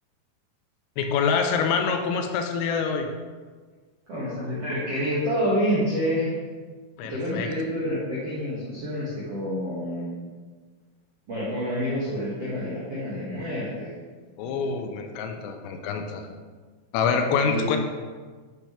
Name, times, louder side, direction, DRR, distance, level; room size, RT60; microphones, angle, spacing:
voice 1, 1.0-3.1 7.0-7.5 14.4-16.2 16.9-17.8, left 5 dB, 85° left, 5 dB, 3.3 m, -26 dB
voice 2, 4.1-6.4 7.0-10.1 11.3-13.9 17.4-17.7, equal, 65° right, -9 dB, 1.5 m, -28 dB
12.0 x 6.5 x 3.3 m, 1.4 s
omnidirectional pair, 6.0 m